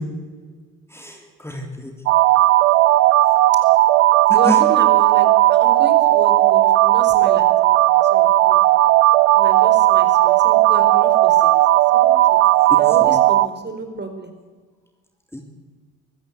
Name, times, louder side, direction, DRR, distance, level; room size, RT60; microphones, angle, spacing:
voice 1, 0.9-1.9 4.3-4.6 13.0-13.2 15.3-15.4, left 1 dB, 5° left, 2 dB, 3.5 m, -29 dB
sound 1, 2.1-13.5, right 16 dB, 80° right, 0.7 m, -15 dB
voice 2, 4.3-8.6 9.3-11.5 11.9-12.4 12.7-14.3, right 2 dB, 25° right, 6 dB, 4.8 m, -32 dB
24.5 x 14.5 x 8.3 m, 1.4 s
hypercardioid pair, 50°, 39 cm